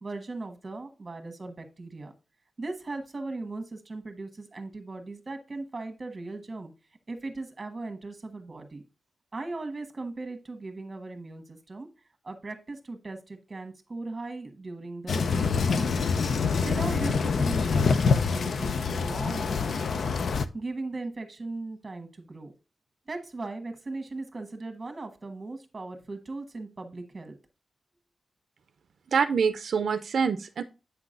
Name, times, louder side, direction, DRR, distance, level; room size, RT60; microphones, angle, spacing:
voice 1, 0.0-2.1 2.6-6.7 7.1-8.8 9.3-11.9 12.2-16.0 16.6-20.2 20.5-22.5 23.1-27.4, right 3 dB, 30° right, 7 dB, 1.3 m, -38 dB
sound 1, 15.1-20.4, left 5 dB, 65° left, 0.5 m, -25 dB
voice 2, 29.1-30.6, right 6 dB, 80° right, 10 dB, 0.4 m, -25 dB
8.2 x 5.9 x 2.5 m, 0.31 s
wide cardioid pair, 160°, 0 cm